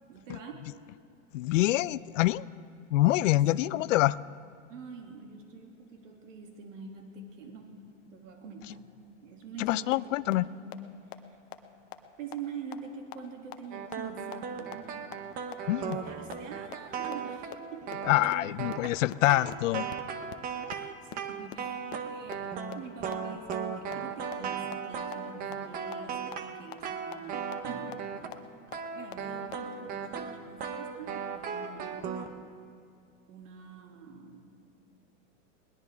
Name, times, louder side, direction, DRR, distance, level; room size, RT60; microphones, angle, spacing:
voice 1, 0.1-0.7 3.3-3.9 4.7-7.8 8.1-8.9 9.2-10.8 12.2-15.0 15.4-15.5 15.8-18.3 20.4-28.1 28.9-32.3 33.3-34.4, right 5 dB, 75° right, 2 dB, 2.6 m, -45 dB
voice 2, 1.3-2.4 2.9-4.1 9.6-10.5 15.7-16.0 18.1-19.9, left 16 dB, 75° left, 19 dB, 0.5 m, -25 dB
sound 1, 9.9-10.0 10.3-10.4 10.7-10.8 11.1-11.2 11.5-11.6 11.9-12.0 12.3-12.4 12.7-12.8 13.1-13.2 13.5-13.6 13.9-14.0 14.3-14.4 14.7-14.8 15.1-15.2 15.5-15.6 15.9-16.0 16.3-16.4 16.7-16.8 17.1-17.2 17.5-17.6 17.9-18.0 18.3-18.4 18.7-18.8 19.1-19.2 19.5-19.6 19.9-20.0 20.3-20.4 20.7-20.8 21.1-21.2 21.5-21.6 21.9-22.0 22.3-22.4 22.7-22.8 23.1-23.2 23.5-23.6 23.9-24.0 24.3-24.4 24.7-24.8 25.1-25.2 25.5-25.6 25.9-26.0 26.3-26.4 26.7-26.8 27.1-27.2 27.5-27.6 27.9-28.0 28.3-28.4 28.7-28.8 29.1-29.2 29.5-29.6, left 19 dB, 35° left, 0.8 m, -40 dB
sound 2, 13.7-28.4 28.7-32.3, right 6 dB, 20° right, 0.7 m, -37 dB
21.0 x 19.5 x 3.5 m, 2.3 s
supercardioid pair, 155°, 38 cm